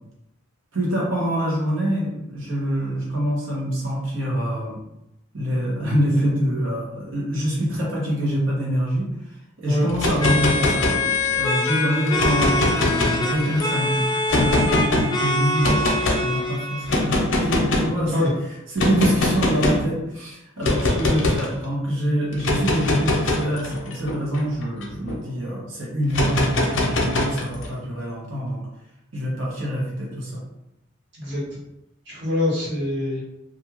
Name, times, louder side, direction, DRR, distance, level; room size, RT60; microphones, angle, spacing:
voice 1, 0.7-4.8 5.3-9.1 9.6-10.9 11.3-18.3 18.7-28.6 29.1-30.4, equal, 75° right, -4 dB, 1.0 m, -25 dB
sound 1, 9.9-11.4 12.1-13.6 14.3-15.0 15.6-16.2 16.9-18.0 18.8-19.9 20.6-21.5 22.3-25.2 26.1-27.7, left 2 dB, 70° left, 0.6 m, -22 dB
sound 2, 10.2-17.0, left 2 dB, 20° left, 0.4 m, -25 dB
voice 2, 32.0-33.2, left 1 dB, 60° right, -8 dB, 1.4 m, -24 dB
2.6 x 2.3 x 2.9 m, 0.87 s
head